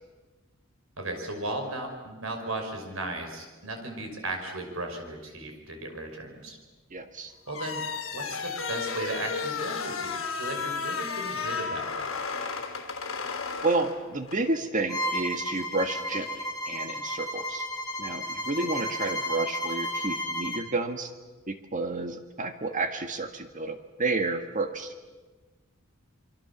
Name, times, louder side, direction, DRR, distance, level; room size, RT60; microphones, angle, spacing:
voice 1, 1.0-6.6 7.5-7.8 8.1-12.1, right 2 dB, 80° right, 4 dB, 5.7 m, -36 dB
voice 2, 6.9-7.3 13.6-17.6 18.0-21.1 21.5-24.9, right 3 dB, 40° right, 7 dB, 1.8 m, -30 dB
sound 1, 7.5-14.4, left 5 dB, 75° left, 3.3 m, -33 dB
Bowed string instrument, 14.9-20.7, equal, 20° left, 3.0 m, -33 dB
27.0 x 24.5 x 7.2 m, 1.3 s
head